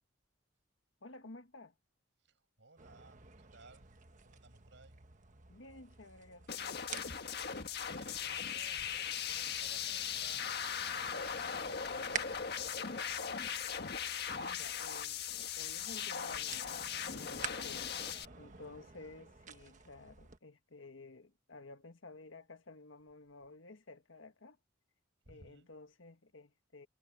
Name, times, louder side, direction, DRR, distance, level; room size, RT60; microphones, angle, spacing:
voice 1, 1.0-1.7 5.5-6.9 14.4-18.0 18.4-24.6 25.3-26.9, left 2 dB, 85° left, 1.6 m, -53 dB
voice 2, 2.2-4.0 4.2-5.1 7.8-13.7 18.1-19.1 25.2-25.7, right 3 dB, 70° right, 7.5 m, -61 dB
sound 1, 2.8-20.4, right 6 dB, 40° right, 1.3 m, -51 dB
sound 2, 6.5-18.3, left 7 dB, 55° left, 1.6 m, -39 dB
head